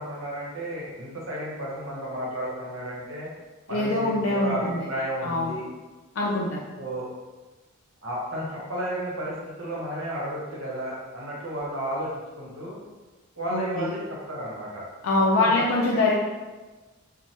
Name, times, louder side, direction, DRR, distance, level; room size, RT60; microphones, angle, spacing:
voice 1, 0.0-3.3 3.7-5.6 6.8-7.1 8.0-12.8 13.3-14.9 15.3-15.6, equal, 70° right, -4 dB, 0.9 m, -33 dB
voice 2, 3.7-4.9 5.2-5.6 6.2-6.6 13.5-13.9 15.0-16.1, left 2 dB, 70° left, -3 dB, 0.4 m, -24 dB
3.2 x 2.1 x 2.7 m, 1.2 s
head